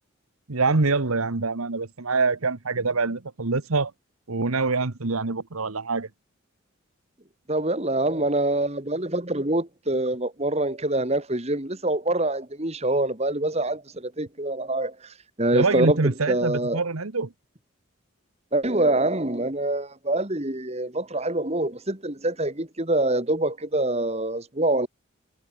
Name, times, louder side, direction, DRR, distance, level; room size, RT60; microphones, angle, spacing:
voice 1, 0.5-3.9 4.3-6.1 15.5-17.3, right 3 dB, 85° right, 1.3 m, -25 dB
voice 2, 7.5-14.9 15.4-16.0 16.3-16.8 18.5-24.9, right 2 dB, 30° right, 2.3 m, -25 dB
head